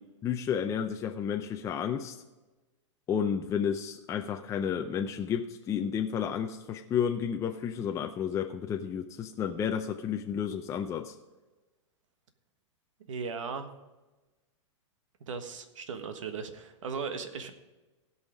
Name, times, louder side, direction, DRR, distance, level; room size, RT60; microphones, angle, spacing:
voice 1, 0.2-2.2 3.1-11.2, left 8 dB, 20° left, 4 dB, 0.5 m, -31 dB
voice 2, 13.1-13.7 15.3-17.5, right 5 dB, 80° right, 8 dB, 1.4 m, -37 dB
16.5 x 5.6 x 5.1 m, 1.1 s
hypercardioid pair, 130°, 16 cm